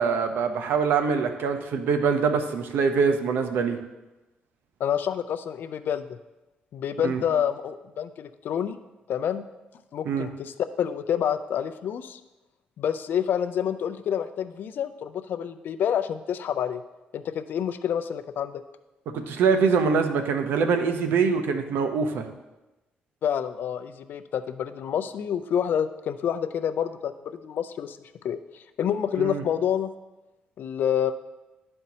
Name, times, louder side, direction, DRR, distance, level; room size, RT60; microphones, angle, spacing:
voice 1, 0.0-3.8 7.0-7.2 10.0-10.3 19.1-22.3 29.2-29.4, right 5 dB, 80° right, 7 dB, 0.7 m, -24 dB
voice 2, 4.8-6.2 6.7-8.8 9.1-9.4 9.9-12.2 12.8-16.8 17.1-18.6 23.2-27.1 27.4-28.0 28.2-29.9 30.6-31.1, left 9 dB, 70° left, 11 dB, 0.4 m, -28 dB
12.0 x 4.4 x 2.8 m, 1.0 s
cardioid pair, 80°, 3 cm